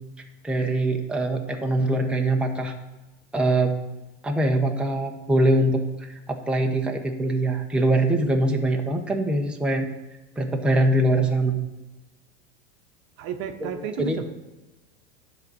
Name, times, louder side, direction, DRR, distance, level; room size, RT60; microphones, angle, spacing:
voice 1, 0.4-2.7 3.3-3.7 4.2-5.8 6.3-9.9 10.4-11.6 13.6-13.7 14.0-14.2, right 1 dB, 5° right, 1 dB, 1.0 m, -23 dB
voice 2, 13.2-14.3, right 7 dB, 45° right, 6 dB, 1.1 m, -32 dB
10.5 x 4.1 x 7.1 m, 1.0 s
hypercardioid pair, 105°, 33 cm